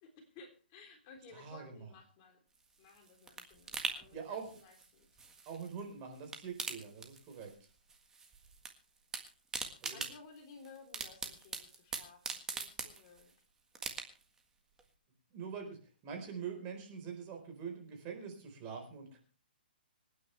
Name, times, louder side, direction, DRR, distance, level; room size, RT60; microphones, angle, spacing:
voice 1, 0.0-2.4 2.8-5.1 9.9-13.3, left 4 dB, 30° left, 3 dB, 3.5 m, -57 dB
voice 2, 1.3-1.9 4.1-4.5 5.5-7.5 9.8-10.0 15.3-15.8 16.0-19.2, right 6 dB, 25° right, 3 dB, 4.2 m, -44 dB
sound 1, 2.6-5.8 6.1-7.6 7.9-8.7 9.0-13.3 13.7-14.4 14.8-14.9, right 4 dB, 10° right, 1.6 m, -42 dB
26.0 x 9.5 x 3.3 m, 0.38 s
hypercardioid pair, 155°, 6 cm